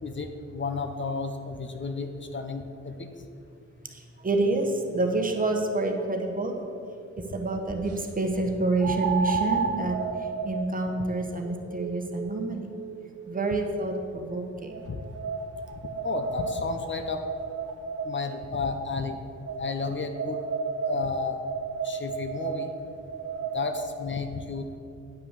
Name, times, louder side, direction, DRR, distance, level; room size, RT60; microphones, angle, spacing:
voice 1, 0.0-3.1 8.8-8.9 14.9-15.0 15.7-17.2 18.0-19.2 19.6-20.4 20.9-21.4 21.8-22.7 23.4-24.8, left 4 dB, 40° left, 6 dB, 0.7 m, -32 dB
voice 2, 3.9-6.5 7.3-10.0 10.4-12.7 13.3-14.9, right 2 dB, 30° right, 3 dB, 1.2 m, -28 dB
sound 1, 6.2-6.3 8.8-14.0 14.7-18.4 19.4-24.0, right 5 dB, 55° right, 1.0 m, -33 dB
9.4 x 5.8 x 6.6 m, 2.5 s
cardioid pair, 100°, 29 cm